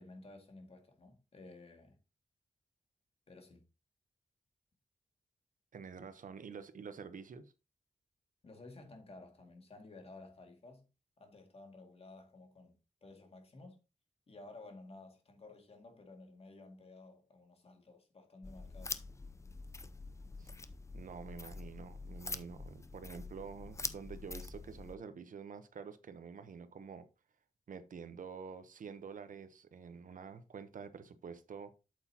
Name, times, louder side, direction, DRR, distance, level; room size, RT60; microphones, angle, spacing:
voice 1, 0.0-2.0 3.3-3.6 8.4-10.9 11.2-13.8 14.3-19.0, left 2 dB, 50° left, 2.2 m, -54 dB
voice 2, 5.7-7.5 20.4-20.5 20.9-27.1 27.7-31.7, right 6 dB, 80° right, 0.9 m, -48 dB
sound 1, 18.4-25.0, left 3 dB, 20° left, 0.6 m, -45 dB
8.1 x 8.1 x 2.9 m
wide cardioid pair, 150°, 13 cm